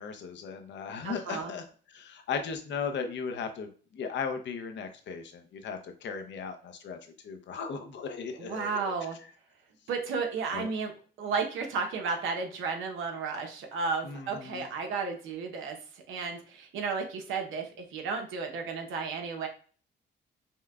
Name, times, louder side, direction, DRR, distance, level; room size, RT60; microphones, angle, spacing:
voice 1, 0.0-7.0 7.2-8.8 10.5-10.7 14.0-14.7, left 6 dB, 65° left, 7 dB, 0.7 m, -37 dB
voice 2, 1.0-1.5 8.4-9.2 9.9-10.9 11.2-15.8 16.1-19.5, right 5 dB, 85° right, 3 dB, 0.9 m, -33 dB
5.4 x 2.2 x 2.3 m, 0.42 s
cardioid pair, 90°, 20 cm